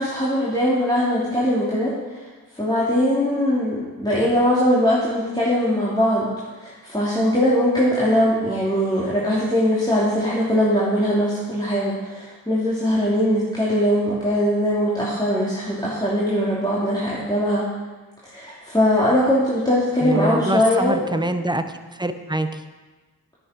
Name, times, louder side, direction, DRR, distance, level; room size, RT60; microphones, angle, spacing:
voice 1, 0.0-1.9 2.6-6.3 6.6-17.6 18.3-21.0, equal, 10° left, -9 dB, 3.3 m, -21 dB
voice 2, 20.0-21.6 21.9-22.6, right 1 dB, 10° right, 9 dB, 0.9 m, -24 dB
9.8 x 9.7 x 5.4 m, 1.3 s
cardioid pair, 40°, 37 cm